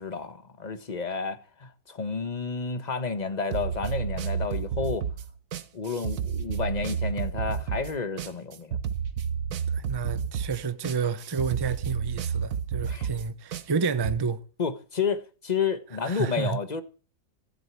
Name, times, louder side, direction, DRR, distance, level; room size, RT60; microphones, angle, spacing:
voice 1, 0.0-5.1 5.7-8.8 12.9-13.1 14.6-16.8, left 5 dB, 30° left, 1.3 m, -31 dB
sound 1, 3.5-14.2, right 7 dB, 80° right, 1.5 m, -31 dB
voice 2, 9.7-14.4 16.0-16.6, right 5 dB, 20° right, 0.7 m, -30 dB
16.0 x 7.9 x 8.2 m
omnidirectional pair, 1.6 m